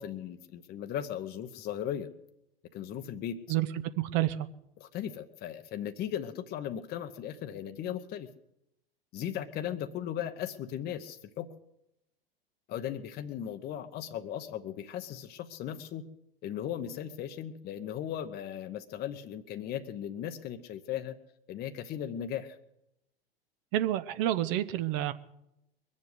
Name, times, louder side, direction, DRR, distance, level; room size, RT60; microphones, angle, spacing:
voice 1, 0.0-2.1 2.7-3.4 4.8-8.3 9.1-11.5 12.7-16.0 16.4-21.2 21.5-22.6, left 10 dB, 30° left, 8 dB, 0.9 m, -37 dB
voice 2, 4.0-4.5 23.7-25.1, right 13 dB, 45° right, 13 dB, 0.8 m, -29 dB
22.0 x 7.4 x 8.1 m, 0.84 s
figure-of-eight pair, 90°, 30 cm